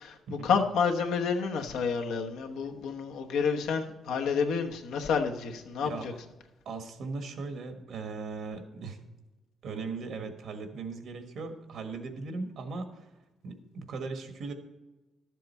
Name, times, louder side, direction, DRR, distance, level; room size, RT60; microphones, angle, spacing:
voice 1, 0.4-6.1, left 6 dB, 85° left, 3 dB, 1.0 m, -29 dB
voice 2, 6.6-9.0 9.6-13.1 13.4-14.5, right 4 dB, 70° right, 7 dB, 1.4 m, -38 dB
11.5 x 7.6 x 4.3 m, 1.1 s
cardioid pair, 90°, 0 cm